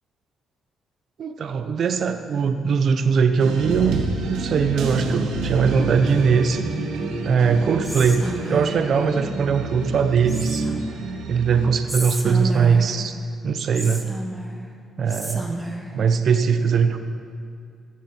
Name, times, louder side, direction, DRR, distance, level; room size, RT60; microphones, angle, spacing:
voice 1, 1.2-4.0 4.3-6.7 7.2-10.7 11.3-13.2 13.4-14.1 15.0-15.5 15.9-17.0, right 6 dB, 60° right, 8 dB, 0.8 m, -20 dB
sound 1, 3.4-11.7, right 3 dB, 85° right, 1.5 m, -28 dB
Whispering, 7.8-8.9 10.3-11.0 11.9-13.1 13.7-14.7 15.1-15.9, right 1 dB, 10° right, 1.7 m, -31 dB
15.0 x 14.0 x 4.5 m, 2.4 s
cardioid pair, 90°, 0 cm